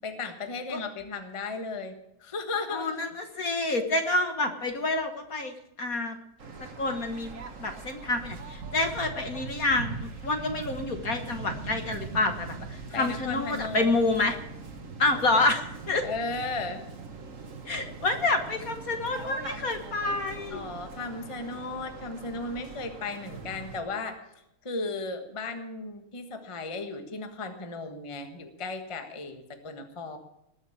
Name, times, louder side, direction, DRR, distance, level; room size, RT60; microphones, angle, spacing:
voice 1, 0.0-2.9 12.9-13.9 16.0-16.8 20.5-24.2 24.6-30.2, left 3 dB, 15° left, 7 dB, 1.2 m, -35 dB
voice 2, 2.7-6.2 6.6-7.3 7.6-14.4 15.0-16.0 17.7-20.7, left 2 dB, 45° left, 6 dB, 1.6 m, -28 dB
Waves surf, 6.4-23.8, right 4 dB, 40° right, 1.7 m, -41 dB
20.0 x 6.6 x 8.5 m, 0.85 s
omnidirectional pair, 2.4 m